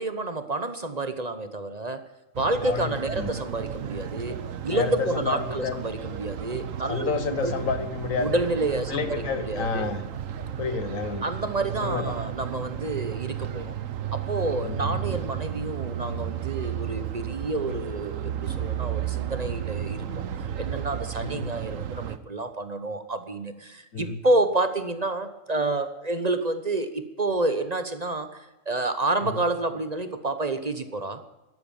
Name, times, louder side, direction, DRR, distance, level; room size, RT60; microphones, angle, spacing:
voice 1, 0.0-2.0 2.3-4.4 4.6-7.6 8.2-9.9 11.2-13.7 14.1-20.2 20.6-31.2, right 2 dB, 35° right, 10 dB, 1.1 m, -29 dB
sound 1, 2.3-22.2, right 9 dB, 85° right, 1.3 m, -33 dB
voice 2, 2.6-3.3 4.7-5.8 6.9-8.4 8.9-10.0 10.6-11.3 11.8-12.2 14.6-15.0 21.2-21.5 23.9-24.2 29.2-29.4, left 5 dB, 85° left, 11 dB, 1.7 m, -30 dB
12.5 x 12.5 x 8.9 m, 1.0 s
omnidirectional pair, 1.3 m